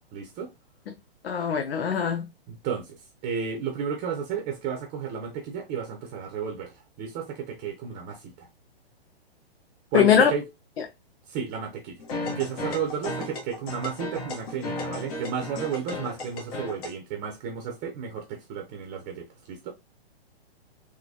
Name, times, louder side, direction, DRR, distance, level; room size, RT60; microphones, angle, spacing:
voice 1, 0.1-0.5 2.5-8.5 9.9-10.4 11.3-19.7, right 7 dB, 25° right, 0.8 m, -33 dB
voice 2, 1.2-2.3 9.9-10.3, left 8 dB, 70° left, 0.7 m, -21 dB
sound 1, 12.0-16.9, left 2 dB, 35° left, 1.2 m, -34 dB
3.9 x 3.0 x 2.8 m
figure-of-eight pair, 120°, 31 cm